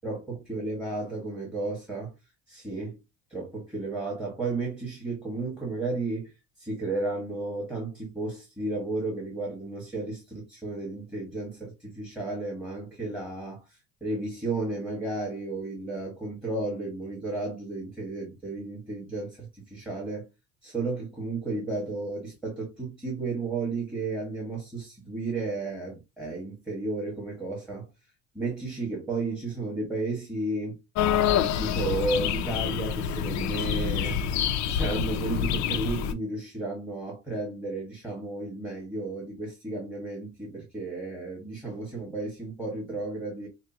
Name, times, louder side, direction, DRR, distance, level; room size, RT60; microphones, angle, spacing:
voice 1, 0.0-2.1 2.5-3.0 3.3-20.3 20.6-27.9 28.3-30.8 31.6-34.4 34.7-43.5, right 2 dB, 5° right, 1.8 m, -33 dB
sound 1, 30.9-36.1, left 8 dB, 60° left, 0.6 m, -27 dB
6.4 x 2.2 x 2.9 m
cardioid pair, 135°, 32 cm